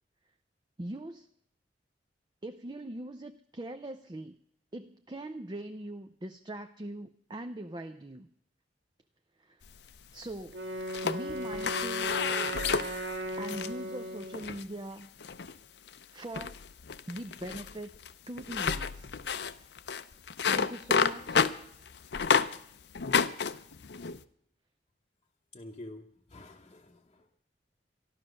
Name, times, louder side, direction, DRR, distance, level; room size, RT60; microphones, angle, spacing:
voice 1, 0.8-1.3 2.4-4.4 4.7-8.3 9.4-9.6 10.1-10.6 11.0-12.2 12.9-15.1 15.5-15.6 16.1-16.6 17.1-17.9 18.3-19.1 19.6-19.7 20.4-21.5, right 1 dB, 25° right, 7 dB, 0.6 m, -41 dB
sound 1, 9.7-10.4 10.8-13.7 14.2-14.7 15.2-15.6 15.9-16.0 16.3-22.6 22.9-24.2, left 6 dB, 70° left, 0.6 m, -30 dB
Wind instrument woodwind instrument, 10.5-14.5, right 1 dB, 90° right, 2.3 m, -37 dB
voice 2, 25.5-27.4, left 1 dB, 30° left, -1 dB, 0.9 m, -48 dB
13.0 x 12.0 x 6.4 m, 0.68 s
head